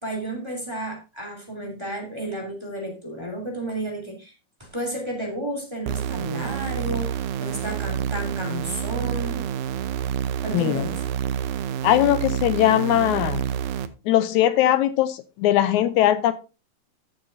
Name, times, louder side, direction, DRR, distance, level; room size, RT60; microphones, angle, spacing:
voice 1, 0.0-4.3 4.6-9.5 10.4-11.0, right 1 dB, 10° right, 0 dB, 2.8 m, -32 dB
sound 1, 5.9-13.9, right 9 dB, 85° right, 2.2 m, -28 dB
voice 2, 10.5-10.8 11.8-13.5 14.1-16.3, left 12 dB, 80° left, 12 dB, 2.0 m, -20 dB
15.0 x 7.0 x 2.6 m, 0.30 s
omnidirectional pair, 3.4 m